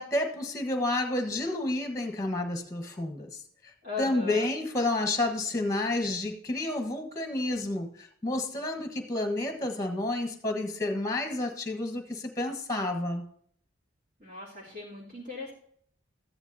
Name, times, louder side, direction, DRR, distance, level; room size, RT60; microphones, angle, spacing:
voice 1, 0.0-3.7 4.0-13.3, left 2 dB, 15° left, 5 dB, 1.3 m, -30 dB
voice 2, 3.8-4.5 14.2-15.5, left 4 dB, 50° right, -7 dB, 2.8 m, -38 dB
14.0 x 10.0 x 2.8 m, 0.62 s
head